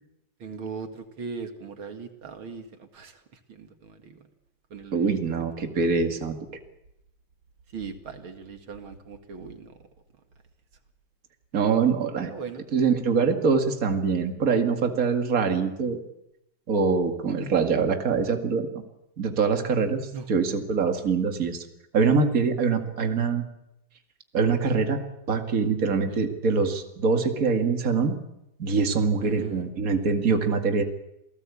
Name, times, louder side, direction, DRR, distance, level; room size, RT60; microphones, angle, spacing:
voice 1, 0.4-3.2 3.5-4.2 4.7-5.1 5.6-5.7 7.7-9.7 12.3-12.6 20.1-20.3 26.1-26.3 29.2-29.6, right 5 dB, 85° right, 6 dB, 2.9 m, -39 dB
voice 2, 4.9-6.4 11.5-12.3 12.7-16.0 16.7-18.7 19.2-20.0 20.3-21.6 21.9-23.4 24.3-25.0 25.3-28.2 28.6-30.8, right 5 dB, 45° right, 5 dB, 2.5 m, -24 dB
27.5 x 19.5 x 8.5 m, 0.86 s
omnidirectional pair, 2.2 m